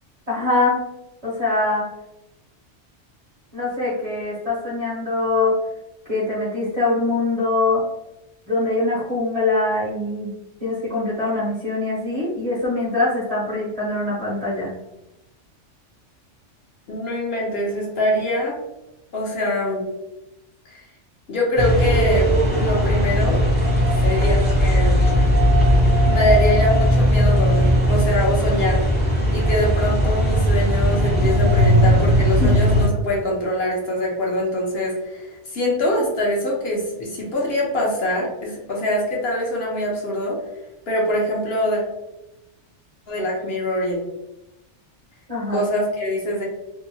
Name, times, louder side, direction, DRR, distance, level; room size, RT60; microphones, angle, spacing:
voice 1, 0.3-0.8 1.2-1.9 3.5-5.6 6.1-7.8 8.5-10.3 10.6-14.7 32.4-32.5 45.3-45.7, left 2 dB, 40° right, -6 dB, 0.6 m, -23 dB
voice 2, 16.9-18.6 19.1-19.9 20.7-20.8 21.3-23.4 24.0-25.0 26.1-28.8 29.3-40.4 40.9-41.8 43.1-44.0 45.5-46.4, left 1 dB, 60° left, -3 dB, 0.9 m, -23 dB
sound 1, 21.6-32.9, equal, 10° left, 0.5 m, -18 dB
2.7 x 2.1 x 2.6 m, 0.93 s
omnidirectional pair, 1.2 m